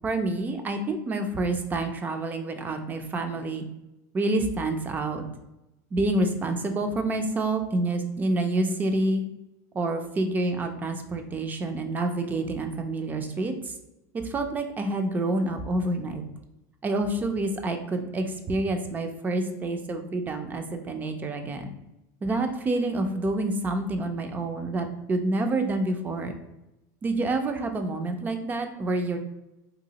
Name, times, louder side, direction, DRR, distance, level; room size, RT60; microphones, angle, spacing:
voice 1, 0.0-3.6 4.1-5.2 5.9-9.2 9.7-13.7 14.1-16.2 16.8-21.7 22.2-26.3 27.0-29.2, right 2 dB, 20° right, 6 dB, 0.4 m, -28 dB
3.8 x 2.6 x 2.8 m, 0.95 s
supercardioid pair, 135°, 9 cm